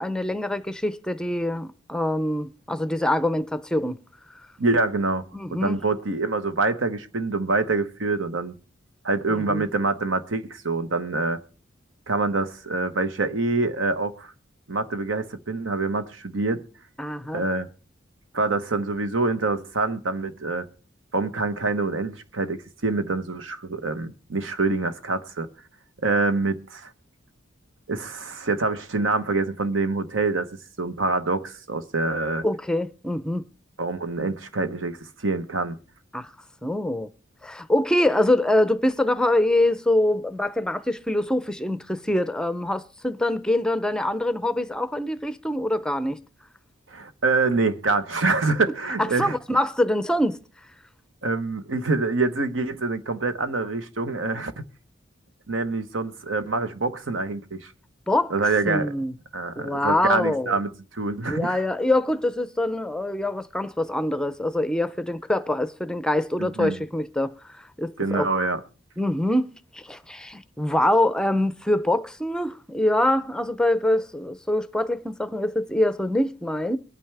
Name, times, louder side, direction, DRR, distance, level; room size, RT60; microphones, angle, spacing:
voice 1, 0.0-4.0 5.3-5.8 9.3-9.6 17.0-17.4 32.4-33.5 36.1-36.3 36.6-37.1 37.4-46.2 49.2-50.4 58.1-58.3 58.7-59.1 59.6-60.6 61.3-68.3 69.0-76.8, left 1 dB, 5° left, 0.5 m, -24 dB
voice 2, 4.6-5.2 5.5-8.5 9.0-11.4 12.1-14.3 14.7-16.6 17.3-17.7 18.3-20.7 21.1-25.5 26.0-26.9 27.9-30.5 30.8-32.4 33.8-35.8 46.9-49.4 51.2-54.7 55.5-57.7 58.3-58.9 59.3-61.6 66.4-66.8 68.0-68.6, right 3 dB, 90° right, 1.1 m, -25 dB
23.0 x 9.0 x 3.4 m
head